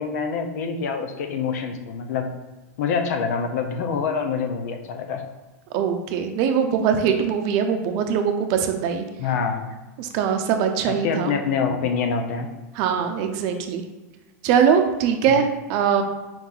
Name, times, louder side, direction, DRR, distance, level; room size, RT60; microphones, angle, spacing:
voice 1, 0.0-2.3 2.8-5.2 9.2-9.7 10.9-12.5 15.3-15.4, left 5 dB, 70° left, 5 dB, 0.7 m, -26 dB
voice 2, 5.7-9.1 10.0-11.3 12.8-13.8 14.4-16.0, right 7 dB, 50° right, 5 dB, 0.6 m, -22 dB
4.6 x 2.7 x 3.8 m, 1.1 s
supercardioid pair, 140°, 9 cm